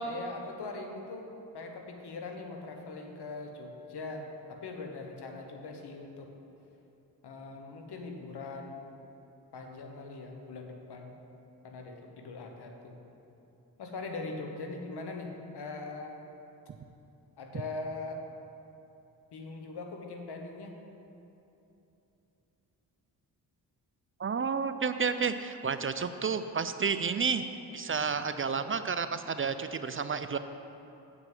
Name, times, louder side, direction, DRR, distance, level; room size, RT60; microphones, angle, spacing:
voice 1, 0.0-6.3 7.2-8.9 9.5-11.1 11.6-12.9 13.8-16.2 17.4-18.3 19.3-20.8, left 3 dB, 75° left, 3 dB, 1.2 m, -41 dB
voice 2, 24.2-27.5 27.7-30.4, right 5 dB, 35° right, 10 dB, 0.4 m, -31 dB
7.4 x 6.2 x 7.6 m, 2.9 s
cardioid pair, 65°, 40 cm